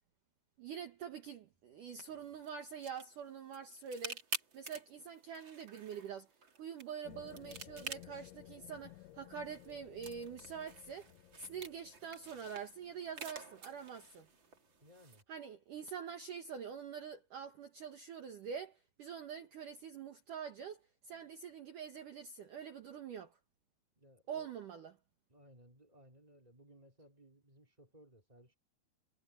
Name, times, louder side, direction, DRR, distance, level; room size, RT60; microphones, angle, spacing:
voice 1, 0.6-4.2 4.5-6.3 6.6-11.1 11.4-14.3 15.3-23.4 24.3-24.9, right 7 dB, 60° right, 2.4 m, -45 dB
sound 1, 2.2-15.2, right 5 dB, 35° right, 2.2 m, -50 dB
sound 2, 7.0-14.3, left 15 dB, 80° left, 3.3 m, -57 dB
voice 2, 14.8-15.3 23.9-24.5 25.3-28.5, equal, 10° right, 2.9 m, -61 dB
omnidirectional pair, 5.2 m